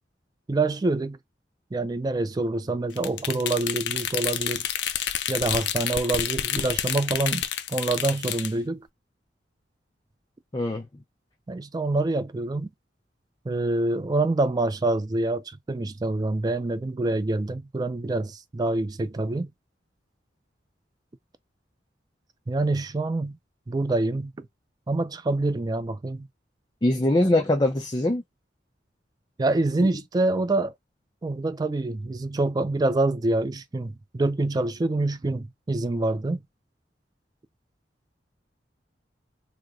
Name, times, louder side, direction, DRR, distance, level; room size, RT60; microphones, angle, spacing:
voice 1, 0.5-1.2 1.7-4.7 5.3-7.4 7.7-8.9 11.5-12.7 13.5-19.5 22.5-23.4 23.7-24.5 24.9-26.3 29.4-30.7 31.2-36.4, right 2 dB, 20° right, 0.3 m, -26 dB
sound 1, 3.0-8.5, left 10 dB, 75° left, 0.5 m, -29 dB
voice 2, 10.5-10.9 26.8-28.2 29.8-29.9, left 1 dB, 25° left, 0.6 m, -22 dB
3.0 x 2.1 x 3.7 m
head